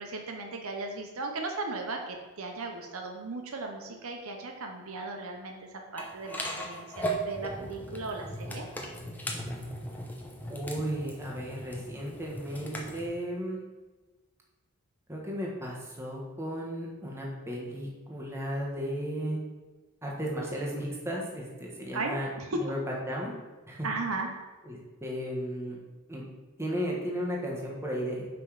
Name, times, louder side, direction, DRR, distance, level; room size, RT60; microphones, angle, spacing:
voice 1, 0.0-5.6 5.9-8.7 21.9-22.6 23.8-24.3, right 3 dB, 65° right, 2 dB, 0.8 m, -36 dB
sound 1, 6.0-13.0, right 1 dB, 10° left, 0.8 m, -37 dB
voice 2, 10.5-13.6 15.1-19.4 20.0-23.3 23.7-23.9 24.6-25.8 26.1-26.2 26.6-28.3, equal, 10° right, -3 dB, 1.4 m, -34 dB
6.0 x 5.3 x 4.8 m, 1.2 s
head